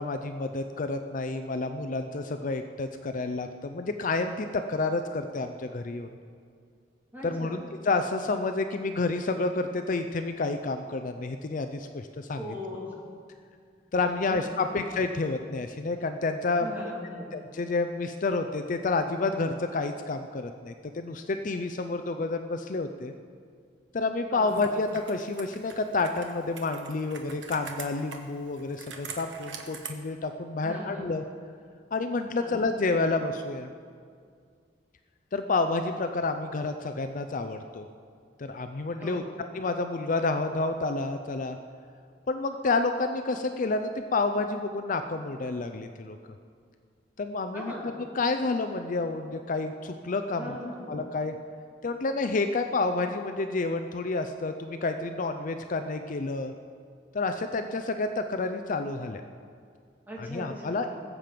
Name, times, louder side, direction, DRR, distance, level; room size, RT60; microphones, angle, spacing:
voice 1, 0.0-6.1 7.2-12.4 13.9-16.9 17.3-23.1 23.9-31.2 31.9-33.7 35.3-37.9 38.4-39.2 39.5-41.6 42.3-46.2 47.2-50.6 50.9-51.3 51.8-56.5 57.1-59.2 60.2-60.9, left 3 dB, 45° left, 7 dB, 0.5 m, -29 dB
voice 2, 7.1-7.6 12.4-12.9 14.0-14.8 16.6-17.4 24.3-24.7 30.6-31.2 32.4-32.6 39.0-39.4 47.5-47.9 50.3-51.0 60.1-61.0, left 1 dB, 10° right, -4 dB, 2.8 m, -40 dB
Computer keyboard, 24.5-29.9, right 5 dB, 90° right, 1.2 m, -44 dB
20.0 x 7.6 x 5.1 m, 2.2 s
head